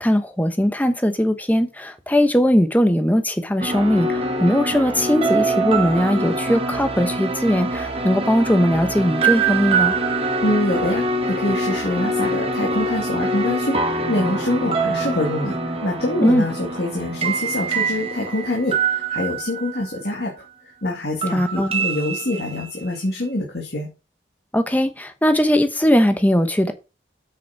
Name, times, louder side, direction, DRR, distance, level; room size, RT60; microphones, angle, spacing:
voice 1, 0.0-10.0 16.2-16.4 21.3-21.7 24.5-26.7, equal, 10° left, 1.0 m, -19 dB
sound 1, 3.6-20.2 21.2-22.9, right 3 dB, 30° right, 1.4 m, -24 dB
voice 2, 10.4-15.6 15.8-20.3 20.8-23.9, left 1 dB, 60° left, 2.3 m, -25 dB
8.1 x 6.5 x 5.8 m
head